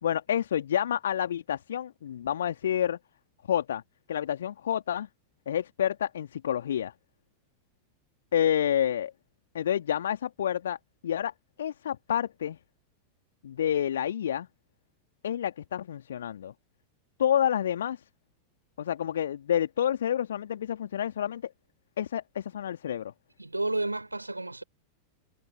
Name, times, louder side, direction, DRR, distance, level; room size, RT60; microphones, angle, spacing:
voice 1, 0.0-3.0 3.5-3.8 4.1-5.1 5.5-6.9 8.3-9.1 9.5-10.8 11.0-11.3 11.6-12.6 13.4-14.5 15.2-16.5 17.2-18.0 18.8-21.5 22.0-23.1, left 10 dB, 65° left, 2.3 m, -29 dB
voice 2, 23.4-24.6, right 2 dB, 85° right, 4.1 m, -31 dB
figure-of-eight pair, 90°, 0 cm